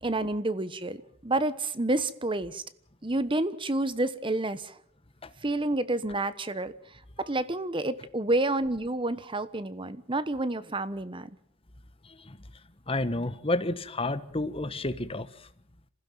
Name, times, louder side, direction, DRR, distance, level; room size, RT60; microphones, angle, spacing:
voice 1, 0.0-2.6 3.0-4.7 5.4-6.7 7.2-11.3, right 2 dB, 25° right, 1.1 m, -29 dB
voice 2, 12.0-12.4 12.9-15.5, left 2 dB, 25° left, 1.3 m, -31 dB
26.5 x 16.0 x 7.6 m
head